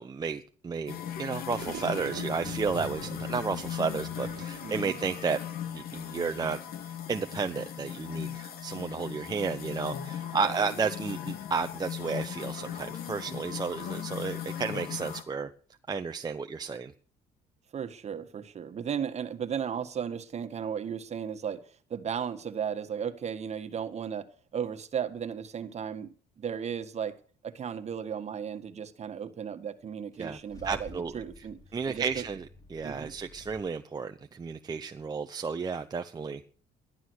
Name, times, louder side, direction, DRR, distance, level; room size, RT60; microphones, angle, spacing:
voice 1, 0.0-5.4 5.7-6.6 6.8-15.5 15.9-16.9 30.2-30.4 30.6-31.1 31.7-32.4 32.7-36.4, right 5 dB, 25° right, 0.8 m, -32 dB
sound 1, 0.9-15.2, left 10 dB, 65° left, 2.1 m, -38 dB
sound 2, 1.5-5.5, right 11 dB, 65° right, 1.0 m, -44 dB
voice 2, 4.6-5.0 10.3-10.6 17.7-27.2 27.4-31.6 31.9-32.2 32.8-33.1, right 8 dB, 40° right, 1.6 m, -35 dB
Car / Engine starting / Idling, 30.1-33.6, left 1 dB, 20° left, 5.3 m, -51 dB
13.0 x 11.5 x 6.4 m
cardioid pair, 110°, 17 cm